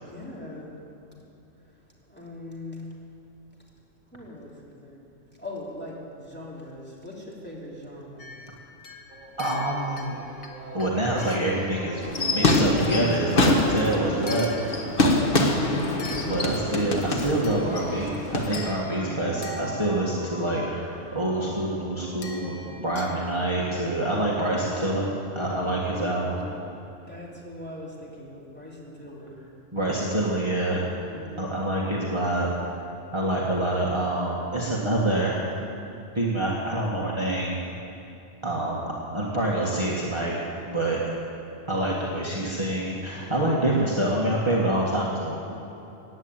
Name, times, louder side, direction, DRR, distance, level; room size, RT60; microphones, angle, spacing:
voice 1, 0.0-0.7 2.0-2.9 4.1-4.9 5.4-8.3 14.1-14.4 18.9-19.4 22.8-23.2 27.1-29.4 31.0-31.4, left 1 dB, 10° left, -5 dB, 3.1 m, -41 dB
sound 1, 8.2-11.6 12.5-13.5 14.3-15.2 16.0-16.9 17.4-18.0 18.5-20.2 22.2-23.2, left 3 dB, 60° left, 1.6 m, -44 dB
Singing, 9.1-22.8, right 3 dB, 75° right, 1.6 m, -43 dB
voice 2, 9.4-10.2 10.7-14.9 16.3-25.1 25.4-26.5 29.7-30.9 31.4-32.5 33.1-35.5 36.1-37.6 38.4-40.3 40.7-41.0 41.7-45.3, right 1 dB, 20° right, -4 dB, 1.7 m, -26 dB
sound 2, 12.0-18.7, left 2 dB, 45° left, 1.5 m, -25 dB
16.0 x 9.8 x 9.0 m, 2.9 s
omnidirectional pair, 1.3 m